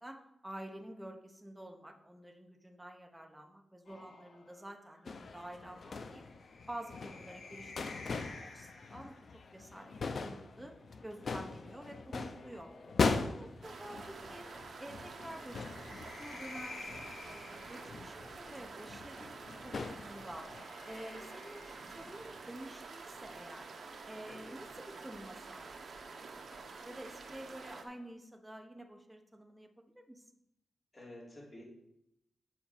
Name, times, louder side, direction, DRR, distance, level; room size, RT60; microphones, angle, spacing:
voice 1, 0.0-6.2 6.7-10.7 11.0-12.7 13.0-14.5 14.8-19.4 19.6-20.5 20.8-21.6 21.9-23.7 24.1-30.3, right 1 dB, 5° right, 3 dB, 1.0 m, -49 dB
sound 1, 3.9-9.4 10.8-13.8 15.1-18.6 19.8-22.8, left 3 dB, 70° left, 1.9 m, -53 dB
sound 2, 5.1-20.6, left 4 dB, 50° left, 0.6 m, -40 dB
sound 3, 13.6-27.8, right 4 dB, 60° right, 1.2 m, -49 dB
voice 2, 24.2-24.6 30.9-31.6, left 1 dB, 30° left, -6 dB, 3.9 m, -52 dB
7.3 x 5.2 x 7.2 m, 0.82 s
wide cardioid pair, 140°, 0 cm